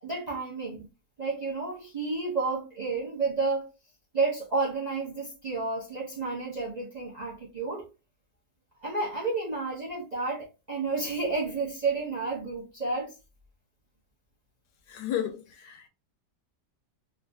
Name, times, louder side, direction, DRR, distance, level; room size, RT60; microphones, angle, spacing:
voice 1, 0.0-0.9 1.2-3.7 4.1-7.9 8.8-13.1, right 3 dB, 40° right, 0.6 m, -31 dB
voice 2, 14.9-15.9, left 10 dB, 85° left, 1.2 m, -33 dB
3.3 x 2.5 x 2.6 m
omnidirectional pair, 1.8 m